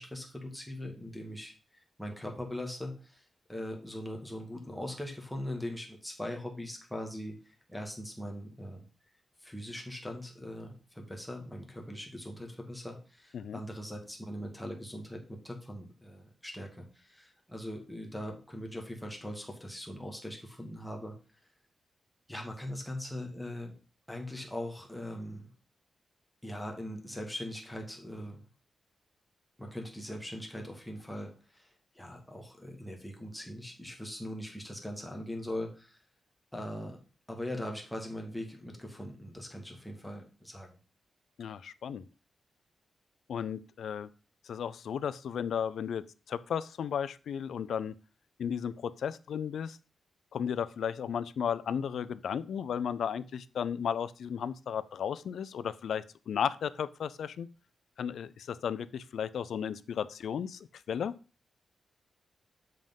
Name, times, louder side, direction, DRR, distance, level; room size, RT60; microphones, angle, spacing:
voice 1, 0.0-1.5 2.0-3.2 3.5-8.8 9.4-21.1 22.3-23.7 24.1-25.5 26.4-28.5 29.6-31.7 31.9-36.0 36.5-37.0 37.3-40.7, left 1 dB, 5° left, 1 dB, 1.4 m, -41 dB
voice 2, 41.4-42.1 43.3-44.1 44.4-47.9 48.4-49.8 50.3-57.5 58.0-61.1, left 8 dB, 80° left, 16 dB, 0.4 m, -34 dB
7.6 x 3.6 x 5.3 m, 0.35 s
wide cardioid pair, 160°, 0 cm